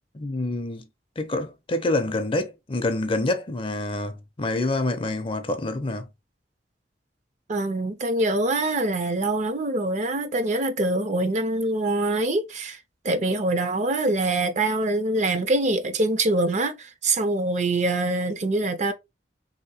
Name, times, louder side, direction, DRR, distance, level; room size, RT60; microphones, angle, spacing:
voice 1, 0.1-0.9 1.2-6.1, left 2 dB, 30° left, 0.5 m, -27 dB
voice 2, 7.5-12.8 13.0-18.9, right 2 dB, 40° right, 0.5 m, -24 dB
3.4 x 2.8 x 2.7 m
head